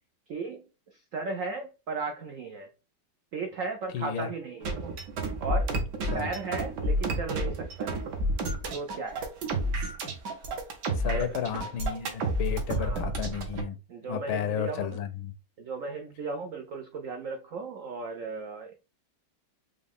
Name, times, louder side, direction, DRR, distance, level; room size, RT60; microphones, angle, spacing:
voice 1, 0.3-2.7 3.3-4.8 5.4-5.7 6.1-8.0 8.7-9.3 11.0-11.5 12.8-13.1 13.9-15.0 15.6-18.8, right 4 dB, 80° right, 0.7 m, -36 dB
voice 2, 3.9-4.3 6.1-6.3 10.9-13.8 14.1-15.3, left 9 dB, 85° left, 1.5 m, -32 dB
sound 1, 4.6-13.6, right 1 dB, 65° right, 1.5 m, -30 dB
5.2 x 2.4 x 3.5 m
omnidirectional pair, 2.2 m